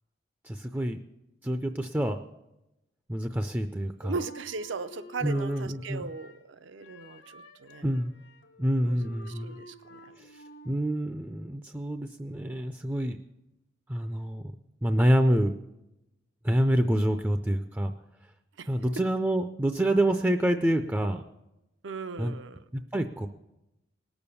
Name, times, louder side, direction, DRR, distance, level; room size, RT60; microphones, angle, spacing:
voice 1, 0.4-1.0 1.4-2.2 3.1-4.2 5.2-6.1 7.8-8.1 8.6-9.6 10.2-13.2 13.9-14.5 14.8-15.5 16.4-17.9 18.7-21.2 22.2-22.3 22.7-23.3, right 1 dB, 10° right, 0.4 m, -27 dB
voice 2, 4.0-7.9 8.8-9.1 9.4-10.1 18.6-18.7 21.8-22.6, right 4 dB, 75° right, 0.6 m, -38 dB
Wind instrument woodwind instrument, 4.1-6.5 6.8-10.9, left 1 dB, 75° left, 1.3 m, -50 dB
19.0 x 7.0 x 6.9 m
head